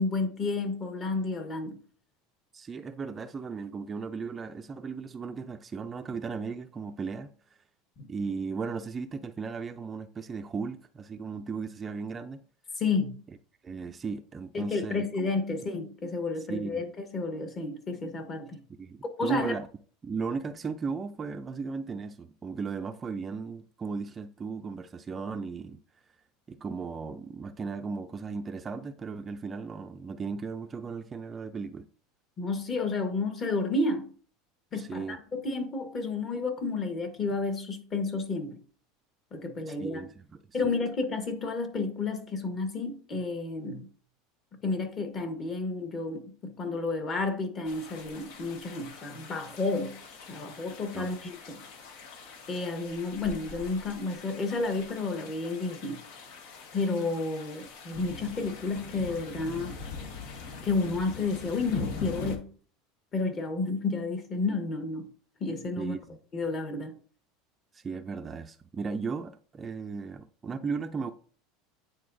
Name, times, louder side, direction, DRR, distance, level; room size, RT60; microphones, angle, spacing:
voice 1, 0.0-1.8 8.0-8.1 12.8-13.2 14.5-16.9 17.1-18.6 19.2-19.6 32.4-34.1 34.7-38.6 39.3-40.0 40.5-43.9 44.6-50.0 50.3-51.7 52.5-56.0 56.7-59.7 60.6-62.5 63.1-65.1 65.4-65.9 66.3-66.9, left 3 dB, 35° left, 1.3 m, -31 dB
voice 2, 2.5-7.3 8.1-12.4 13.6-15.1 16.5-16.8 18.8-19.7 20.0-25.8 26.5-31.9 34.7-35.2 39.7-40.7 50.9-51.1 65.8-66.0 67.7-71.1, right 5 dB, 25° right, 0.4 m, -36 dB
sound 1, 47.6-62.4, left 4 dB, 70° left, 1.1 m, -42 dB
9.5 x 3.9 x 2.6 m
supercardioid pair, 115°, 0 cm